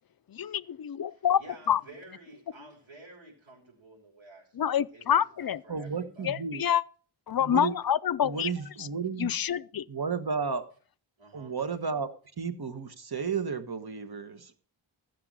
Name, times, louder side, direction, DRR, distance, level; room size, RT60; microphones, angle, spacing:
voice 1, 0.3-1.4 1.7-1.8 4.6-5.6 6.2-6.8 7.3-8.5 9.2-9.8, left 9 dB, 50° left, 0.6 m, -27 dB
voice 2, 1.1-6.3 11.2-11.5, right 2 dB, 70° right, 6.0 m, -52 dB
voice 3, 5.7-6.6 7.4-7.7 8.2-9.3 9.9-10.7 11.3-12.1 12.4-14.6, right 5 dB, 50° right, 1.5 m, -33 dB
14.5 x 6.8 x 6.3 m
wide cardioid pair, 70°, 48 cm